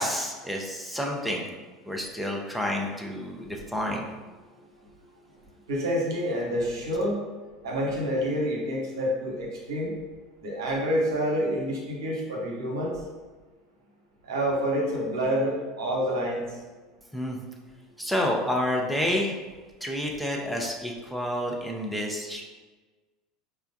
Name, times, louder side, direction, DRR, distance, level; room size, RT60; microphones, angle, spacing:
voice 1, 0.0-1.5 1.9-4.1 17.1-17.4 18.0-19.4 19.8-22.4, left 1 dB, ahead, -1 dB, 0.5 m, -29 dB
voice 2, 5.7-7.2 7.6-9.9 10.4-12.9 14.3-16.4, equal, 80° right, -2 dB, 0.8 m, -27 dB
4.5 x 2.2 x 2.6 m, 1.3 s
hypercardioid pair, 80°, 2 cm